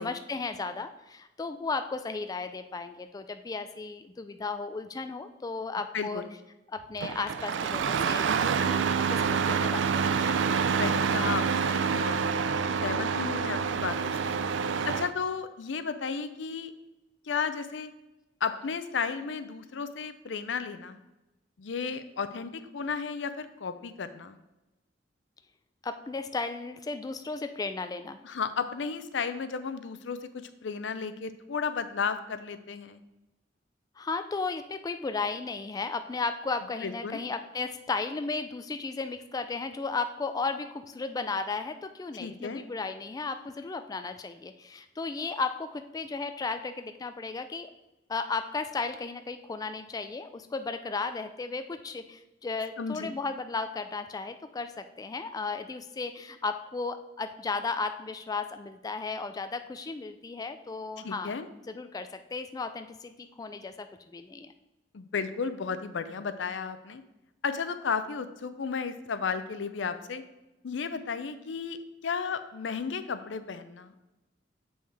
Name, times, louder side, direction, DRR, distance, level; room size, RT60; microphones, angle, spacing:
voice 1, 0.0-6.2 6.7-10.5 25.8-28.2 34.0-47.7 48.1-61.3 61.7-63.9 64.1-64.5, left 4 dB, 20° left, 9 dB, 0.3 m, -35 dB
voice 2, 5.9-6.3 10.8-12.2 12.8-14.3 14.8-16.7 17.3-17.9 18.4-21.0 21.6-24.4 28.2-33.0 36.8-37.2 42.2-42.6 52.8-53.1 61.0-61.5 64.9-67.0 67.4-70.2 70.6-74.1, left 5 dB, 80° left, 11 dB, 0.5 m, -33 dB
Engine starting, 7.0-15.1, right 6 dB, 80° right, 0.4 m, -27 dB
7.2 x 5.4 x 3.3 m, 1.0 s
head